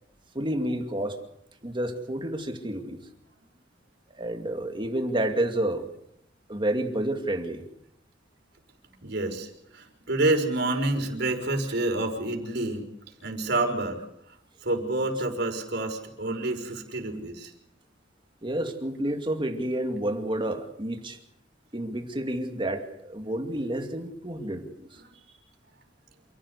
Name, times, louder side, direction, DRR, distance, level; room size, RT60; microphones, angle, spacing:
voice 1, 0.3-1.2 1.6-3.0 4.1-5.9 6.5-7.6 18.4-21.2 21.7-24.9, right 1 dB, 25° right, 5 dB, 2.4 m, -30 dB
voice 2, 9.0-12.9 13.2-14.0 14.6-17.5 25.3-25.4, right 2 dB, 65° right, 4 dB, 5.9 m, -28 dB
28.5 x 16.5 x 8.3 m, 0.74 s
head